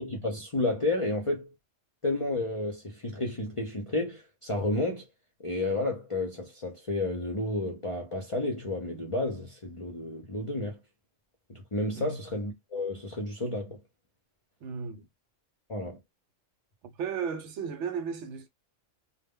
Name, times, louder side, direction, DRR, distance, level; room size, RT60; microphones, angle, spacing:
voice 1, 0.0-1.5 2.0-5.1 5.4-10.8 11.5-13.8 15.7-16.0, left 2 dB, 40° left, 0.5 m, -31 dB
voice 2, 14.6-15.1 16.8-18.5, right 6 dB, 70° right, 0.9 m, -35 dB
2.1 x 2.1 x 3.5 m
omnidirectional pair, 1.3 m